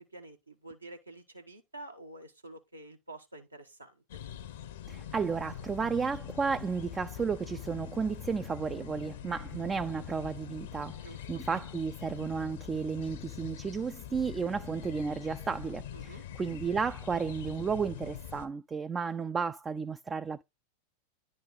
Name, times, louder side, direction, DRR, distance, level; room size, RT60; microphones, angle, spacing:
voice 1, 0.0-3.9 11.0-11.2 15.9-16.2, right 2 dB, 85° right, 1.2 m, -48 dB
sound 1, 4.1-18.5, left 10 dB, 55° left, 0.8 m, -43 dB
voice 2, 4.9-20.4, right 5 dB, 20° right, 0.3 m, -33 dB
10.0 x 4.1 x 4.0 m
figure-of-eight pair, 90°, 0 cm